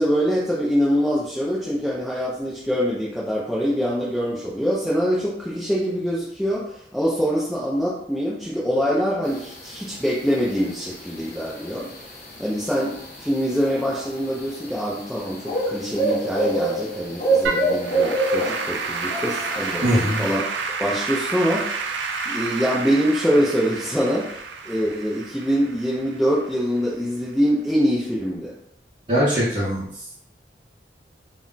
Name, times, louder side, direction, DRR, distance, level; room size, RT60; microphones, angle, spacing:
voice 1, 0.0-20.4 20.8-21.9 22.3-24.4 24.6-28.5, equal, ahead, -7 dB, 0.3 m, -24 dB
sound 1, 9.3-20.3, right 2 dB, 50° left, 0.7 m, -27 dB
Applause / Keyboard (musical), 17.4-26.8, right 4 dB, 80° right, 0.3 m, -30 dB
voice 2, 19.8-20.2 29.1-30.0, equal, 30° right, -11 dB, 0.8 m, -21 dB
2.2 x 2.1 x 3.7 m, 0.69 s
head